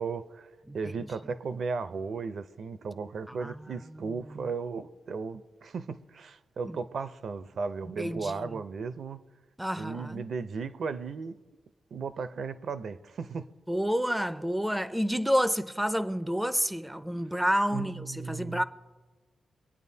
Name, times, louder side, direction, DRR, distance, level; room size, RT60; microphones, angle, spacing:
voice 1, 0.0-0.5 0.7-9.2 9.8-11.4 11.9-13.5 17.7-18.6, right 5 dB, 55° right, 0.5 m, -35 dB
voice 2, 3.3-3.6 4.2-4.5 6.7-6.8 8.0-8.6 9.6-10.2 13.7-18.6, equal, 5° right, 0.4 m, -29 dB
24.0 x 9.0 x 2.7 m
wide cardioid pair, 155°, 0 cm